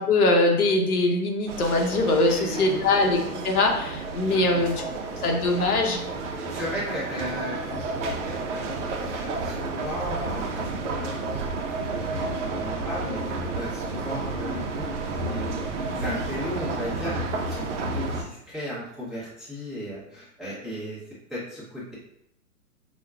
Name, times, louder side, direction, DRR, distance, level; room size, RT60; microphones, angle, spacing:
voice 1, 0.0-4.8 5.2-6.0, left 2 dB, 75° left, 2 dB, 0.9 m, -22 dB
sound 1, 1.5-18.2, right 3 dB, 55° right, 0.6 m, -31 dB
voice 2, 2.1-2.8 4.2-4.9 6.4-8.6 9.1-11.4 11.9-17.1 17.5-21.0 21.3-21.9, equal, ahead, -10 dB, 0.8 m, -36 dB
5.0 x 2.2 x 2.3 m, 0.78 s
hypercardioid pair, 135°, 45 cm